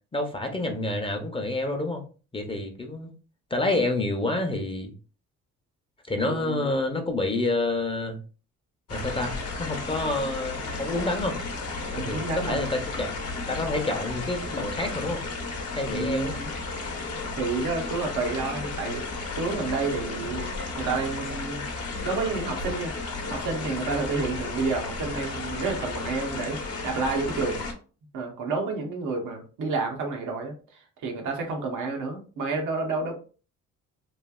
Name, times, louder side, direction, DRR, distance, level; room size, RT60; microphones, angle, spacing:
voice 1, 0.1-2.0 2.3-3.1 3.5-4.9 6.1-8.2 8.9-11.4 12.0-13.1 13.5-15.2 15.7-16.4, left 2 dB, 20° left, 4 dB, 0.6 m, -28 dB
voice 2, 6.2-6.7 11.9-12.7 15.9-16.5 17.4-19.0 19.3-20.5 20.8-21.6 22.0-22.9 23.3-27.6 28.1-33.2, right 4 dB, 85° right, 2 dB, 0.9 m, -30 dB
sound 1, 8.9-27.7, left 3 dB, 55° left, 0.8 m, -33 dB
3.1 x 2.3 x 2.3 m, 0.36 s
cardioid pair, 90°, 30 cm